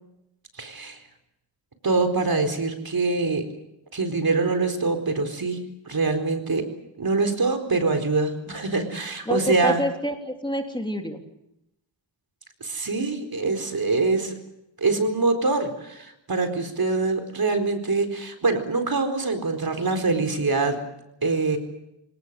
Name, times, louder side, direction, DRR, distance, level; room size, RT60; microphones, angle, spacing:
voice 1, 0.6-1.0 1.8-3.4 3.9-5.6 5.9-6.6 7.0-9.8 12.6-14.4 14.8-20.8 21.2-21.6, right 3 dB, 50° right, 7 dB, 4.5 m, -24 dB
voice 2, 9.3-11.2, equal, 10° left, 4 dB, 3.3 m, -27 dB
27.5 x 18.5 x 7.7 m, 0.85 s
cardioid pair, 65°, 45 cm